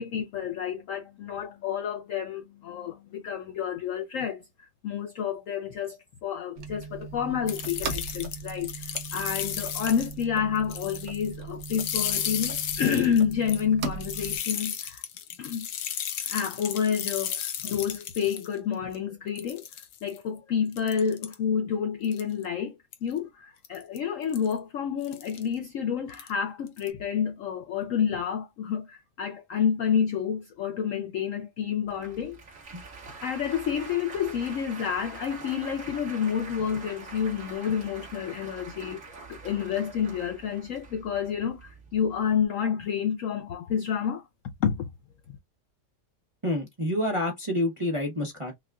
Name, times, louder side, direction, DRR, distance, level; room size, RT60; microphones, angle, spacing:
voice 1, 0.0-15.0 15.4-15.7 16.2-19.6 20.0-22.7 23.0-32.4 33.2-39.0 39.3-44.2 44.6-44.9, left 7 dB, 70° left, 0.8 m, -29 dB
sound 1, 6.6-14.4, right 4 dB, 65° right, 1.2 m, -38 dB
sound 2, 7.5-10.2 10.6-11.3 11.6-18.5 18.9-19.0 19.4-20.2 20.7-21.3 22.0-22.4 22.9-23.1 23.6-24.0 24.3-24.5 25.0-25.4 26.1-26.3 26.7-26.9, left 9 dB, 85° left, 1.3 m, -34 dB
Applause, 31.9-42.5, right 4 dB, 50° right, 2.0 m, -45 dB
voice 2, 46.4-48.5, left 1 dB, 25° right, 0.7 m, -28 dB
5.5 x 2.3 x 2.3 m
omnidirectional pair, 1.8 m